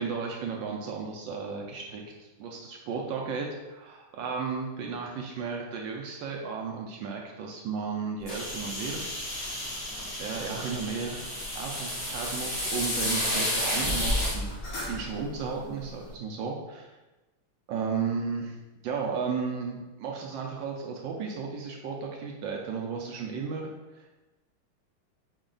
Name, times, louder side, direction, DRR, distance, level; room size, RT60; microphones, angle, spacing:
voice 1, 0.0-9.0 9.3-9.6 10.2-11.3 11.5-14.6 14.9-16.9 17.7-18.5 18.8-23.7 23.9-24.1, right 5 dB, 75° right, 0 dB, 1.1 m, -34 dB
sound 1, 8.3-14.3, left 1 dB, 85° left, 0.3 m, -32 dB
sound 2, 8.5-16.1, left 1 dB, 65° left, 1.6 m, -38 dB
5.0 x 2.3 x 3.7 m, 1.1 s
omnidirectional pair, 2.4 m